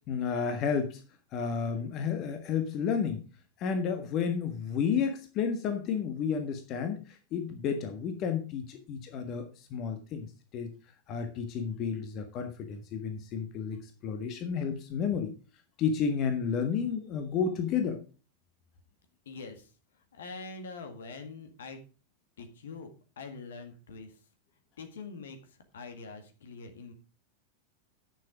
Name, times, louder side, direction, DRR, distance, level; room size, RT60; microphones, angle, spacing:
voice 1, 0.1-1.0 1.3-3.2 3.6-10.7 11.1-15.3 15.8-18.0, left 6 dB, 35° left, 7 dB, 1.5 m, -31 dB
voice 2, 19.3-21.8 22.4-24.2 24.8-26.9, left 4 dB, 65° left, 7 dB, 1.9 m, -44 dB
10.5 x 6.9 x 5.0 m, 0.36 s
figure-of-eight pair, 90°, 0 cm